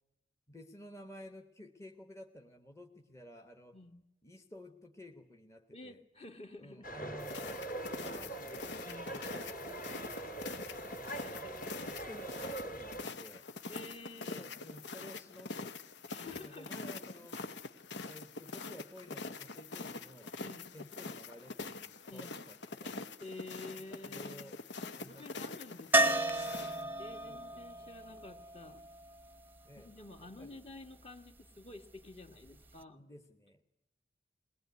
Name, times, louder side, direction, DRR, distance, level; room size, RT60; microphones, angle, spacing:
voice 1, 0.5-3.8 4.2-6.0 6.6-7.7 7.9-11.4 11.9-13.5 14.2-15.8 16.2-17.4 18.0-20.3 20.7-23.0 23.7-24.6 24.9-25.5 26.5-28.4 29.6-29.9 30.2-30.9 32.9-33.7, left 1 dB, 15° left, 4 dB, 1.1 m, -53 dB
voice 2, 3.7-4.0 5.7-7.1 8.8-9.2 11.0-12.0 13.7-14.5 16.1-17.3 20.4-20.7 22.1-22.4 23.2-24.5 25.0-26.5 27.0-28.9 29.7-33.0, left 2 dB, 35° left, 6 dB, 1.5 m, -51 dB
sound 1, 6.8-13.0, right 1 dB, 50° left, 3.0 m, -43 dB
sound 2, 7.2-26.8, left 3 dB, 85° left, 0.9 m, -45 dB
sound 3, 25.9-29.8 32.5-32.6 32.8-32.9, right 1 dB, 10° right, 0.8 m, -33 dB
21.5 x 19.5 x 9.4 m, 0.91 s
head